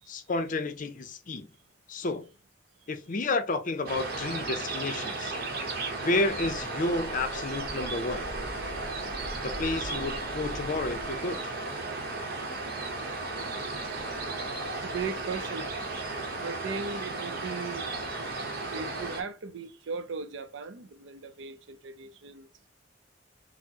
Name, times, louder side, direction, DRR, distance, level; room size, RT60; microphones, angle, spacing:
voice 1, 0.1-1.5 1.9-2.2 2.9-5.4 6.0-8.3 9.4-11.4, left 2 dB, 45° left, 0.5 m, -31 dB
sound 1, 3.9-19.2, right 3 dB, 55° right, 0.8 m, -34 dB
voice 2, 9.2-9.7 14.8-15.7 16.4-17.9 18.7-22.5, right 5 dB, 75° right, 0.5 m, -38 dB
4.4 x 2.0 x 2.8 m
head